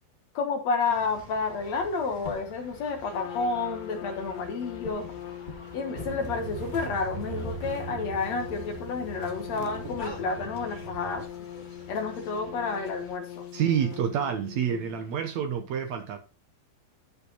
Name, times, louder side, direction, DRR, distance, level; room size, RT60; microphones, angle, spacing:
voice 1, 0.3-5.0 5.7-11.2 11.9-13.5, left 4 dB, 60° left, 1.8 m, -30 dB
sound 1, 0.9-14.0, left 2 dB, 30° left, 0.8 m, -46 dB
Trumpet, 3.1-15.2, left 11 dB, 85° left, 2.8 m, -42 dB
sound 2, 6.0-11.2, right 7 dB, 65° right, 2.8 m, -40 dB
voice 2, 13.5-16.2, right 8 dB, 80° right, 1.6 m, -28 dB
12.5 x 5.7 x 4.2 m
omnidirectional pair, 4.9 m